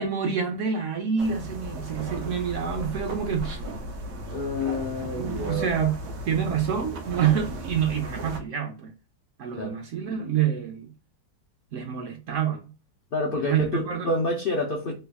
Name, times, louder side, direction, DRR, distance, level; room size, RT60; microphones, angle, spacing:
voice 1, 0.0-3.6 5.2-6.0 6.3-8.9 9.4-10.9 11.7-12.7 13.4-14.1, right 8 dB, 65° right, 0.8 m, -27 dB
sound 1, 1.2-8.4, right 1 dB, 90° right, 1.2 m, -36 dB
voice 2, 4.3-5.7 9.6-9.7 13.1-14.9, left 2 dB, 65° left, 0.5 m, -28 dB
3.3 x 2.2 x 3.4 m
omnidirectional pair, 1.7 m